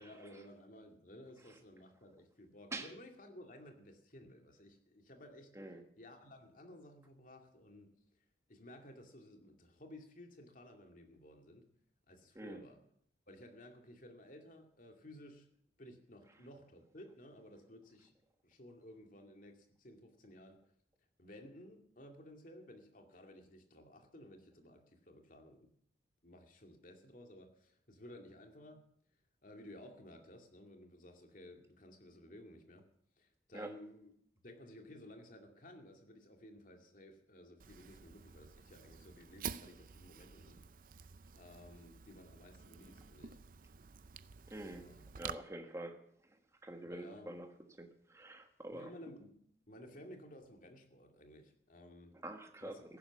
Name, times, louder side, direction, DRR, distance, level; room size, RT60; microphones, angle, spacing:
voice 1, 0.0-5.5 6.0-7.9 8.5-11.7 12.1-12.8 13.3-15.5 15.8-18.1 18.4-20.6 21.2-25.7 26.2-28.8 29.4-32.8 33.2-34.1 34.4-40.6 41.3-43.4 44.7-45.1 46.8-47.4 48.7-49.4 49.7-52.1 52.6-52.8, left 1 dB, 50° left, 4 dB, 2.4 m, -55 dB
Fire, 37.6-45.3, right 7 dB, 50° right, 0.5 m, -50 dB
voice 2, 44.5-44.8 45.2-46.0 46.6-47.5 47.8-48.9 52.2-52.7, right 1 dB, 15° right, 5 dB, 1.5 m, -46 dB
15.0 x 11.5 x 7.2 m, 0.68 s
head